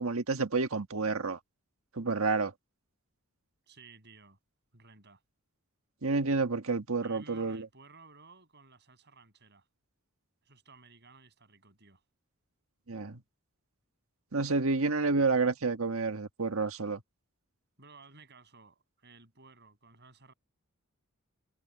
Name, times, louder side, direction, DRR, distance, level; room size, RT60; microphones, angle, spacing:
voice 1, 0.0-1.4 2.0-2.5 6.0-7.7 12.9-13.2 14.3-17.0, right 3 dB, 70° right, 1.5 m, -29 dB
voice 2, 3.7-4.4 4.7-5.2 7.0-9.7 10.4-12.0 17.8-20.3, right 4 dB, 50° right, 6.8 m, -56 dB
head